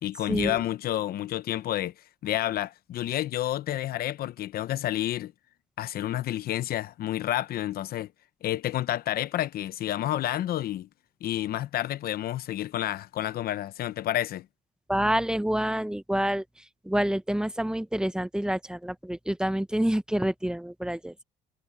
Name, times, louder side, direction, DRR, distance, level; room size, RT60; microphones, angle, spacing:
voice 1, 0.0-1.9 2.2-5.3 5.8-8.1 8.4-10.9 11.2-14.5, left 13 dB, 65° left, 0.9 m, -30 dB
voice 2, 14.9-16.4 16.8-21.2, right 1 dB, 5° right, 1.0 m, -27 dB
cardioid pair, 110°, 17 cm